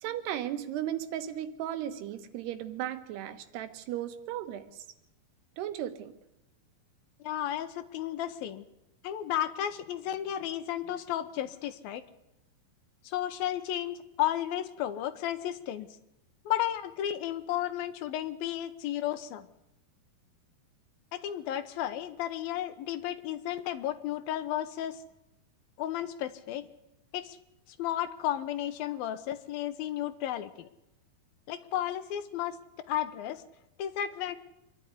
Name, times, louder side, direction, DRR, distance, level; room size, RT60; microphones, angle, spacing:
voice 1, 0.0-4.9 5.6-6.1, right 11 dB, 85° right, 10 dB, 3.3 m, -36 dB
voice 2, 7.2-8.7 9.0-12.0 13.0-15.9 16.5-19.5 21.1-25.0 25.8-26.7 27.1-27.4 27.8-30.7 31.5-32.6 32.9-33.4 33.8-34.4, left 11 dB, 75° left, 11 dB, 2.6 m, -33 dB
25.5 x 11.5 x 9.7 m, 0.90 s
omnidirectional pair, 4.6 m